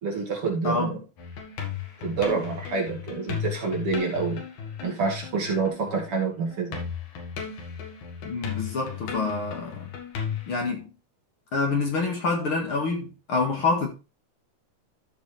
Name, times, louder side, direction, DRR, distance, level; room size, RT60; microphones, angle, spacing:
voice 1, 0.0-1.0 2.0-4.4 4.8-6.8, right 4 dB, 50° right, 3.1 m, -27 dB
voice 2, 0.6-1.0 8.2-9.9 10.5-10.9 11.5-13.9, left 3 dB, 50° left, 2.5 m, -27 dB
sound 1, 1.2-6.2 6.5-10.5, left 7 dB, 85° left, 3.2 m, -35 dB
13.5 x 5.5 x 3.3 m
omnidirectional pair, 3.4 m